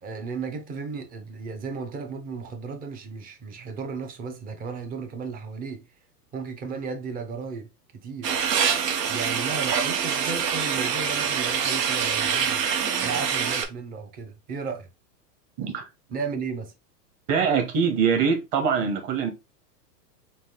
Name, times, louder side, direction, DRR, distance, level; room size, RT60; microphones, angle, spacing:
voice 1, 0.0-5.9 6.3-8.3 9.1-12.6 13.0-14.9 16.1-16.7, right 5 dB, 20° right, 0.6 m, -34 dB
sound 1, 8.2-13.6, right 7 dB, 85° right, 1.0 m, -25 dB
voice 2, 15.6-15.9 17.3-19.3, right 6 dB, 40° right, 1.1 m, -23 dB
4.0 x 2.5 x 3.7 m
hypercardioid pair, 115°, 48 cm